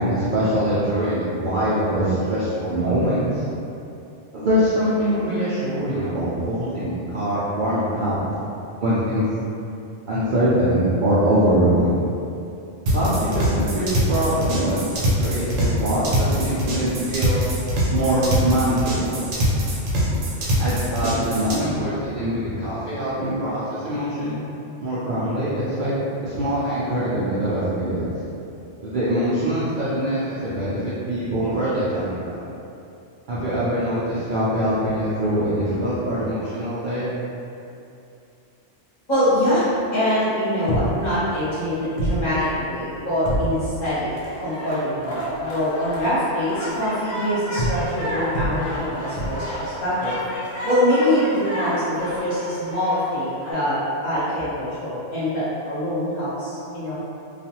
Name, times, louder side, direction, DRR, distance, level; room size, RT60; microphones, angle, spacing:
voice 1, 0.0-3.4 4.3-8.2 8.8-9.2 10.1-11.9 12.9-14.8 15.2-17.4 17.9-19.2 20.6-24.4 24.8-25.9 26.2-28.1 28.8-32.4 33.3-37.1, right 1 dB, 60° right, -11 dB, 0.5 m, -23 dB
sound 1, 12.9-21.6, equal, 90° right, 1.0 m, -23 dB
voice 2, 39.1-50.2 50.6-53.8 54.0-56.9, equal, 40° left, -12 dB, 1.0 m, -24 dB
sound 2, 40.7-41.1 41.6-41.7 42.0-42.5 43.2-43.8 47.6-48.0 48.3-48.8 49.2-49.6 51.9-52.0, equal, 60° left, 0.8 m, -26 dB
sound 3, 44.1-53.5, equal, 90° left, 1.0 m, -32 dB
2.4 x 2.3 x 2.8 m, 2.7 s
omnidirectional pair, 1.3 m